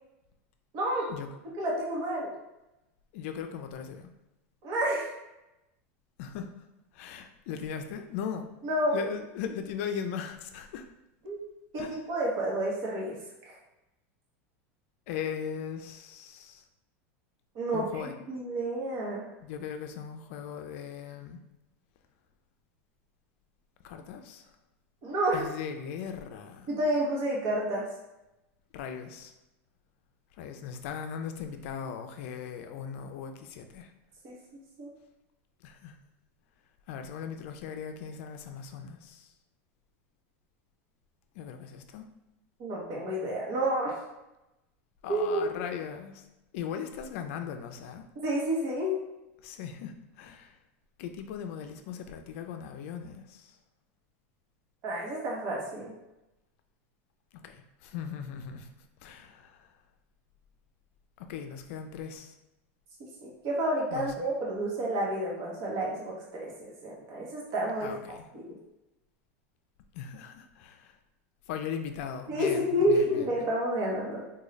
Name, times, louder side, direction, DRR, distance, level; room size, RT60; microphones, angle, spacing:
voice 1, 0.7-1.1 1.6-2.3 4.6-5.0 8.6-9.0 11.2-11.4 11.7-13.2 13.5-13.6 17.5-19.2 25.0-25.4 26.7-27.9 34.2-34.4 34.8-34.9 42.6-43.9 45.1-45.5 48.2-49.0 54.8-55.9 63.2-67.9 68.3-68.6 72.3-74.2, right 1 dB, 45° right, -3 dB, 0.9 m, -30 dB
voice 2, 3.1-4.1 6.2-6.5 6.9-8.5 8.9-10.9 11.8-12.0 15.1-16.6 17.7-18.1 19.4-21.4 23.8-24.5 25.3-26.7 28.7-29.3 30.4-33.9 35.6-36.0 36.9-39.3 41.3-42.1 45.0-46.2 46.5-48.1 49.4-50.6 51.0-53.6 57.3-58.7 59.0-59.7 61.2-62.4 63.9-64.3 67.8-68.3 69.9-71.0 71.5-73.5, left 7 dB, 60° left, 6 dB, 0.4 m, -38 dB
3.7 x 2.3 x 3.2 m, 0.95 s
supercardioid pair, 150°, 8 cm